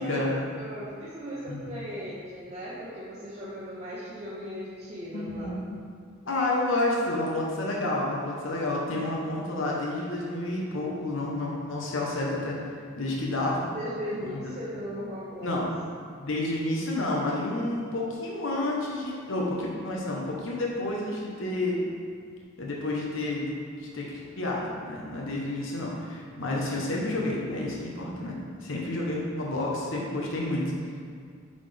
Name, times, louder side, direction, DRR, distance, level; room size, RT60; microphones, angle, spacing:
voice 1, 0.0-5.5 13.7-15.6, equal, 35° right, -9 dB, 0.8 m, -37 dB
voice 2, 5.1-5.7 6.3-12.6 13.0-13.7 14.2-14.4 15.4-15.7 16.2-21.8 22.6-23.5 23.9-30.7, left 2 dB, 85° left, -3 dB, 0.9 m, -30 dB
7.1 x 4.2 x 3.4 m, 2.1 s
head